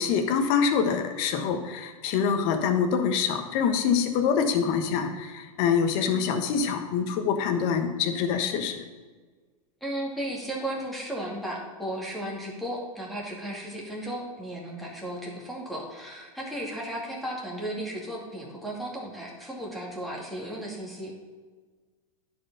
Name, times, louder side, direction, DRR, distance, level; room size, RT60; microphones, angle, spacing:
voice 1, 0.0-8.8, left 6 dB, 45° left, 6 dB, 1.2 m, -25 dB
voice 2, 9.8-21.1, right 1 dB, ahead, -4 dB, 2.4 m, -35 dB
11.0 x 5.0 x 5.5 m, 1.4 s
hypercardioid pair, 120°, 18 cm